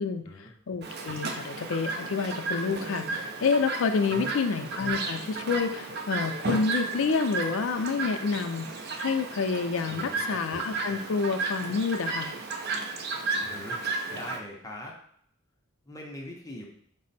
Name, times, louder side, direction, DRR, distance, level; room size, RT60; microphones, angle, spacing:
voice 1, 0.7-8.7 9.0-12.3, left 5 dB, 70° left, 7 dB, 0.4 m, -28 dB
Chirp tweet, 0.8-14.4, right 3 dB, 50° right, 0.4 m, -33 dB
voice 2, 9.9-10.4 13.4-14.9 15.9-16.7, left 1 dB, 15° left, -1 dB, 0.6 m, -42 dB
4.3 x 2.0 x 4.0 m, 0.64 s
head